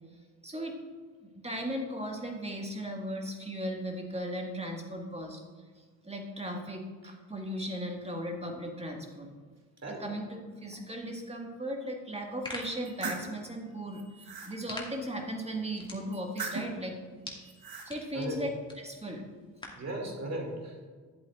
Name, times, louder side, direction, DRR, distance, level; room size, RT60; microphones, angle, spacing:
voice 1, 0.4-0.8 1.2-5.4 5.8-9.3 9.9-17.0 17.9-18.5 18.8-19.3, equal, 15° right, 1 dB, 1.9 m, -37 dB
sound 1, 12.1-19.9, left 1 dB, 10° left, 2.3 m, -48 dB
sound 2, 12.6-13.3 13.9-14.5 16.1-16.8 17.4-17.9, right 4 dB, 55° right, 1.5 m, -39 dB
voice 2, 18.1-18.4 19.8-20.9, right 1 dB, 40° right, 0 dB, 2.7 m, -36 dB
11.0 x 7.9 x 2.5 m, 1.5 s
hypercardioid pair, 45°, 42 cm